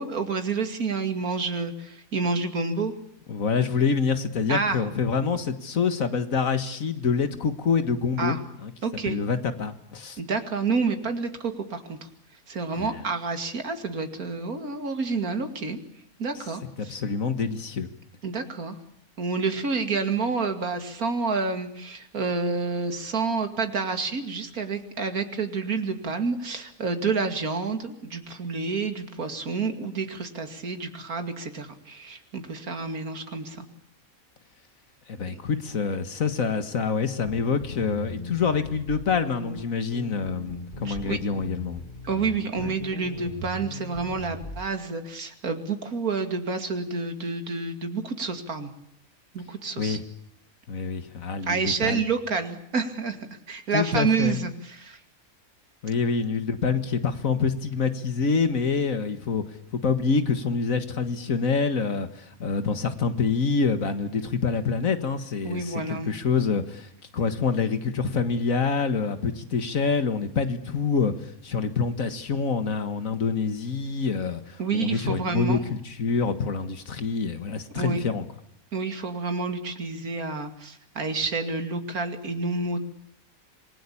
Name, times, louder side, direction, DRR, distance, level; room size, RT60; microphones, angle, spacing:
voice 1, 0.0-2.9 4.5-4.8 8.2-8.4 8.8-9.2 10.2-12.1 12.5-15.8 16.2-16.9 18.2-18.8 19.2-33.7 40.8-41.2 42.0-48.7 49.3-50.0 51.5-53.2 53.5-55.0 65.4-66.1 74.6-75.6 77.7-78.0 78.7-82.8, right 4 dB, 80° right, 7 dB, 2.8 m, -29 dB
voice 2, 3.3-8.7 9.1-10.2 12.8-13.0 16.8-17.9 35.1-41.8 42.6-42.7 49.8-50.0 50.7-52.0 53.7-54.4 55.8-59.4 59.8-78.3, left 5 dB, 70° left, 10 dB, 2.0 m, -26 dB
sound 1, 37.3-44.7, left 2 dB, 35° left, 2.0 m, -39 dB
26.5 x 21.0 x 8.6 m, 0.72 s
omnidirectional pair, 1.5 m